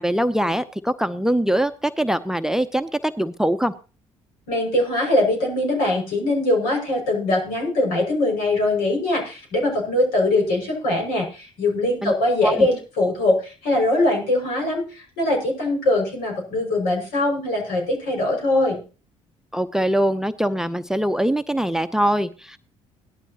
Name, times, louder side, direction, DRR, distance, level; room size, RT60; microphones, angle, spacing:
voice 1, 0.0-3.7 12.0-12.1 12.4-12.7 19.5-22.6, right 1 dB, 5° right, 14 dB, 0.8 m, -22 dB
voice 2, 4.5-18.8, left 1 dB, 70° left, 0 dB, 6.0 m, -22 dB
18.0 x 12.0 x 2.9 m, 0.34 s
figure-of-eight pair, 50°, 16 cm